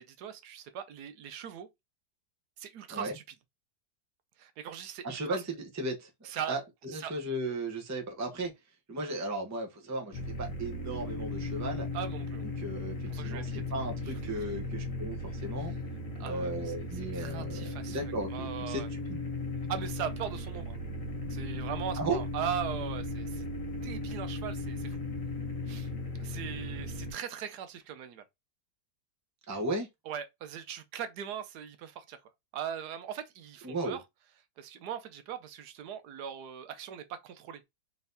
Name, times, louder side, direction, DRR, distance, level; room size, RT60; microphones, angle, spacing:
voice 1, 0.0-1.7 2.6-3.2 4.4-5.4 6.2-6.6 7.0-7.1 11.9-12.4 13.1-13.4 14.3-14.6 16.2-16.7 17.1-18.9 19.7-20.8 21.3-23.5 23.8-25.0 25.7-25.9 26.2-28.2 30.1-32.2 32.5-34.0 34.6-37.6, right 9 dB, 80° right, 1.2 m, -39 dB
voice 2, 5.0-5.4 5.7-6.1 6.5-8.5 8.9-11.9 12.4-15.2 15.4-15.7 16.2-17.6 17.9-18.8 19.1-19.2 22.0-22.2 29.5-29.9 33.6-34.0, right 2 dB, 15° right, 0.6 m, -35 dB
sound 1, 10.1-27.1, left 2 dB, 55° left, 1.4 m, -37 dB
4.0 x 3.5 x 2.6 m
omnidirectional pair, 1.7 m